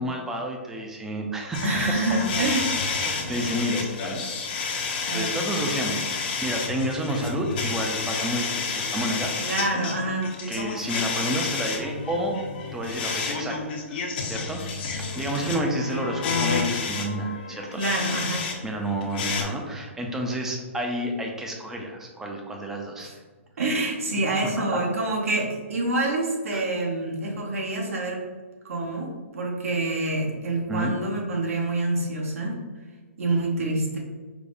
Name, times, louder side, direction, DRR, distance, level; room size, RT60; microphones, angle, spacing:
voice 1, 0.0-1.6 3.0-4.3 5.1-9.5 10.5-12.4 12.7-17.8 18.6-23.1 24.7-24.8 26.5-26.6 30.7-30.9, equal, 5° right, 1 dB, 0.3 m, -30 dB
sound 1, 1.5-18.5 18.8-19.4, left 4 dB, 45° left, 0.5 m, -30 dB
voice 2, 1.6-2.7 5.1-5.3 9.4-10.4 15.3-15.6 17.8-18.5 23.0-23.1 23.6-28.2 28.6-32.6 33.2-34.0, right 2 dB, 80° right, -1 dB, 0.8 m, -27 dB
4.8 x 2.0 x 2.5 m, 1.4 s
hypercardioid pair, 150°, 7 cm